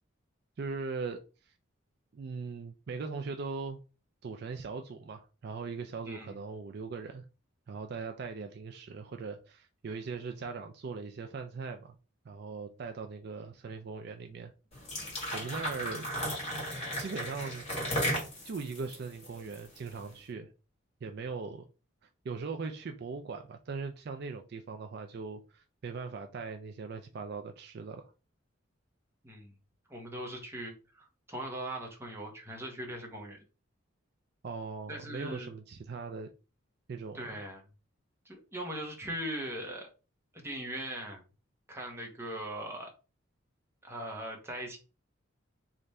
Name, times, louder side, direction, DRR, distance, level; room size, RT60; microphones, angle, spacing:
voice 1, 0.6-1.2 2.1-3.8 4.2-7.2 7.7-11.9 12.3-14.5 15.3-16.1 17.0-17.7 18.4-20.5 21.0-21.6 22.2-28.1 34.4-36.3 36.9-37.2, right 4 dB, 50° right, 0.3 m, -40 dB
voice 2, 6.0-6.4 29.2-29.5 29.9-33.4 34.9-35.5 37.1-37.6 38.2-39.9 40.3-41.2 41.7-42.9 43.8-44.8, right 1 dB, 10° right, 0.9 m, -40 dB
sound 1, 14.7-20.0, equal, 30° left, 2.0 m, -35 dB
3.3 x 2.5 x 4.1 m
head